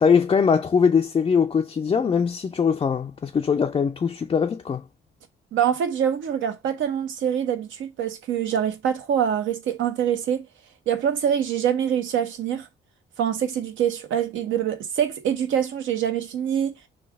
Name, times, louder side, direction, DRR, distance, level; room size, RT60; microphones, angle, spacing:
voice 1, 0.0-4.8, left 6 dB, 25° left, 0.4 m, -21 dB
voice 2, 5.5-10.5 10.9-12.7 13.2-16.8, right 9 dB, 75° right, 0.8 m, -25 dB
3.2 x 2.3 x 3.3 m
cardioid pair, 90°, 20 cm